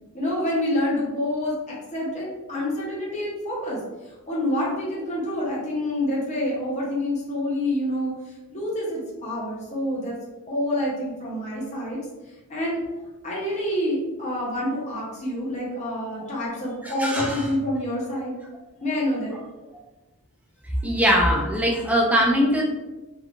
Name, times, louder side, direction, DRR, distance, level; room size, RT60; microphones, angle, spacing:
voice 1, 0.1-8.1 8.5-10.1 10.5-12.1 12.5-12.8 13.2-18.4 18.8-19.4, left 1 dB, 35° left, -5 dB, 0.8 m, -27 dB
voice 2, 17.0-17.4 20.8-22.7, equal, 5° right, -1 dB, 0.5 m, -21 dB
2.8 x 2.4 x 2.4 m, 1.1 s
head